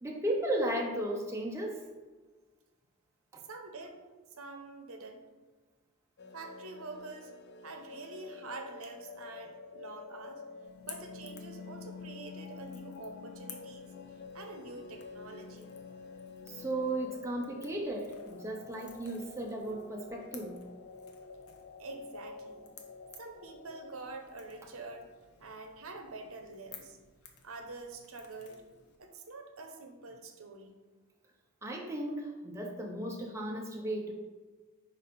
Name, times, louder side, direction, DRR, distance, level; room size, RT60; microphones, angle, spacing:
voice 1, 0.0-1.8 3.3-3.4 16.5-20.6 31.6-34.1, right 1 dB, 10° right, 0 dB, 0.5 m, -35 dB
voice 2, 3.5-4.0 4.4-5.2 6.3-7.3 7.6-10.4 10.8-15.8 21.8-22.7 23.2-25.1 25.4-27.0 27.4-28.6 29.0-30.8, right 3 dB, 70° right, 4 dB, 0.9 m, -46 dB
sound 1, 6.2-25.3, left 5 dB, 50° left, 0.4 m, -49 dB
Crackle / Crack, 10.6-29.0, left 6 dB, 80° left, 0.9 m, -56 dB
5.3 x 5.2 x 4.2 m, 1.3 s
head